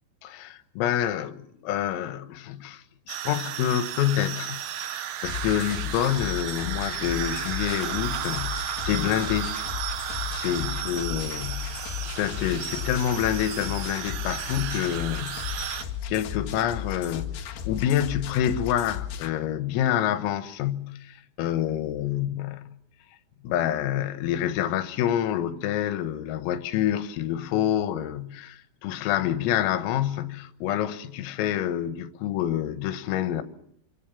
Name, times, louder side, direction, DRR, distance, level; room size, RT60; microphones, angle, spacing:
voice 1, 0.2-9.6 10.3-11.8 12.2-22.6 23.4-33.4, left 11 dB, 85° left, 4.0 m, -27 dB
sound 1, 3.1-15.8, right 11 dB, 70° right, 2.7 m, -34 dB
sound 2, 5.2-19.3, left 9 dB, 65° left, 3.3 m, -35 dB
26.0 x 26.0 x 7.2 m
omnidirectional pair, 6.0 m